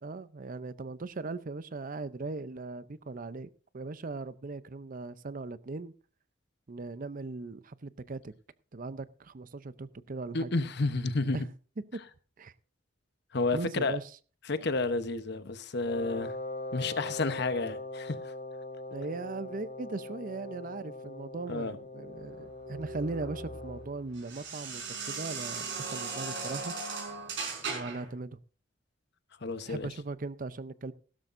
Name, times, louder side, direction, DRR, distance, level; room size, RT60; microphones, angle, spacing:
voice 1, 0.0-5.9 6.7-8.3 8.7-10.5 11.3-11.5 11.9-12.0 12.4-12.5 13.5-14.1 18.9-26.8 27.7-28.4 29.7-30.9, right 3 dB, 45° right, 0.6 m, -39 dB
voice 2, 10.3-11.4 13.3-14.0 14.5-16.3 16.7-18.3 21.5-21.8 29.4-29.9, left 3 dB, 60° left, 1.0 m, -31 dB
Wind instrument woodwind instrument, 15.9-23.9, left 2 dB, 35° left, 3.7 m, -41 dB
sound 1, 22.3-28.1, right 4 dB, 65° right, 4.9 m, -38 dB
16.5 x 12.5 x 2.6 m
head